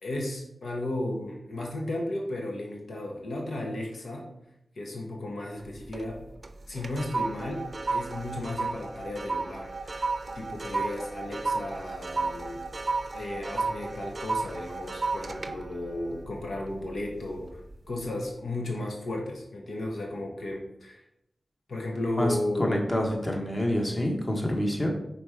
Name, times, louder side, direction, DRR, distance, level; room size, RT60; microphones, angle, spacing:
voice 1, 0.0-4.3 4.8-6.2 6.7-10.0 10.3-12.6 13.1-17.6 17.9-21.0 21.7-22.8, left 1 dB, 85° left, 0 dB, 1.2 m, -34 dB
sound 1, 5.6-6.1 6.4-17.0 17.4-17.7, right 3 dB, 50° right, 0.5 m, -33 dB
voice 2, 22.2-24.9, left 1 dB, 30° left, 1 dB, 1.4 m, -27 dB
5.3 x 4.4 x 4.8 m, 0.79 s
cardioid pair, 60°, 0 cm